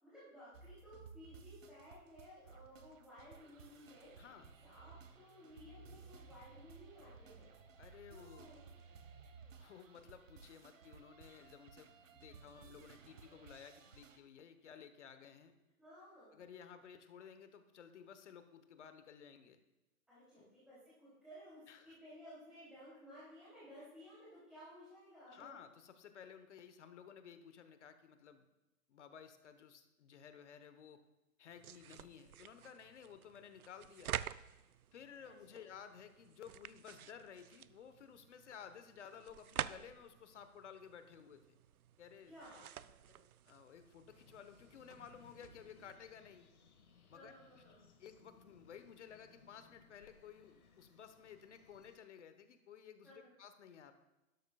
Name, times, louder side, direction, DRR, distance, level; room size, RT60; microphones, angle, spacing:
voice 1, 0.0-4.2 4.6-7.5 8.1-8.6 15.8-16.4 20.1-25.5 35.2-35.6 42.2-43.2 47.1-47.7 53.0-53.3, equal, ahead, -12 dB, 3.0 m, -57 dB
sound 1, 0.5-14.2, right 5 dB, 60° right, 1.3 m, -58 dB
voice 2, 4.2-4.5 7.8-8.5 9.6-15.5 16.3-19.6 20.3-20.5 21.7-22.0 25.3-28.5 28.9-31.0 31.4-34.2 34.9-41.6 42.0-42.3 43.5-46.5 47.1-47.3 48.0-53.9, left 7 dB, 55° left, 9 dB, 1.2 m, -55 dB
sound 2, 31.5-46.0, right 10 dB, 80° right, 0.5 m, -49 dB
sound 3, 44.1-52.0, left 5 dB, 75° left, 1.8 m, -66 dB
12.0 x 12.0 x 2.4 m, 1.0 s
hypercardioid pair, 145°, 44 cm